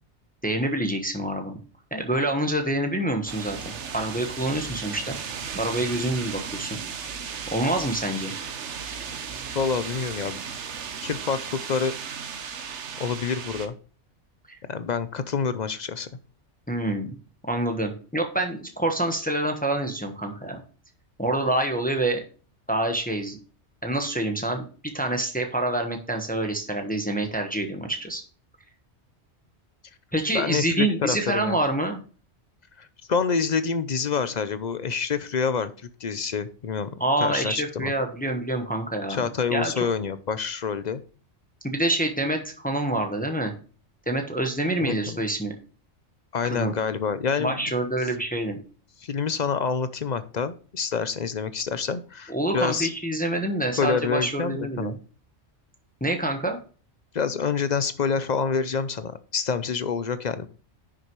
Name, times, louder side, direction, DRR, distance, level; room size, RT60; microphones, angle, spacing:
voice 1, 0.4-1.6 1.9-5.2 5.5-6.8 7.5-8.3 14.5-14.6 16.7-17.1 17.5-20.6 21.2-22.2 22.7-23.4 23.8-28.2 30.1-32.0 37.0-39.7 41.6-43.5 44.1-45.5 46.4-46.7 47.4-48.6 52.3-54.9 56.0-56.6, right 1 dB, 10° left, 4 dB, 1.1 m, -27 dB
sound 1, 3.3-13.7, right 6 dB, 75° right, 1.2 m, -35 dB
voice 2, 9.5-10.4 11.0-11.9 13.0-13.7 14.7-16.1 30.3-31.6 32.8-35.7 36.0-36.9 37.2-37.9 39.1-41.0 44.8-45.2 46.3-47.6 49.0-52.9 53.8-54.9 57.1-60.5, left 6 dB, 50° left, 13 dB, 0.6 m, -27 dB
10.0 x 6.3 x 3.1 m, 0.38 s
omnidirectional pair, 1.2 m